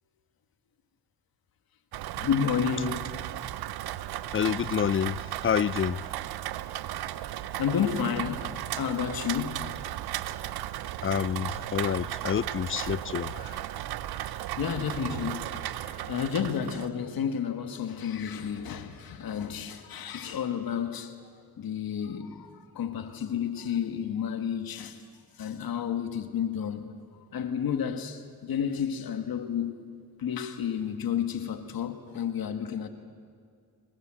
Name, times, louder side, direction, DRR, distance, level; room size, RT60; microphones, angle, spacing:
Rain, 1.9-16.9, right 13 dB, 85° right, 0.8 m, -35 dB
voice 1, 2.2-3.1 7.6-9.7 13.3-13.6 14.1-21.1 21.6-25.0 25.4-26.8 27.3-29.8 30.2-32.9, left 8 dB, 70° left, 1.9 m, -31 dB
voice 2, 4.3-6.0 11.0-13.3, left 8 dB, 35° left, 0.5 m, -28 dB
24.5 x 20.5 x 7.7 m
supercardioid pair, 55°, 37 cm